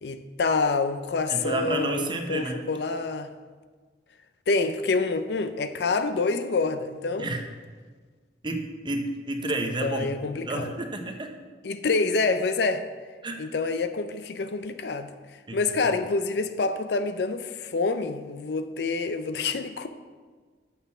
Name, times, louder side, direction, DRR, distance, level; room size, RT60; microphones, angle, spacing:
voice 1, 0.0-3.3 4.5-7.3 9.6-10.7 11.6-12.9 13.4-15.1 15.5-19.9, left 3 dB, 65° left, 10 dB, 0.5 m, -27 dB
voice 2, 1.3-2.7 7.2-7.4 8.4-11.3 13.2-13.4 15.5-15.6, right 2 dB, 25° right, 4 dB, 0.8 m, -30 dB
6.5 x 5.6 x 7.1 m, 1.5 s
head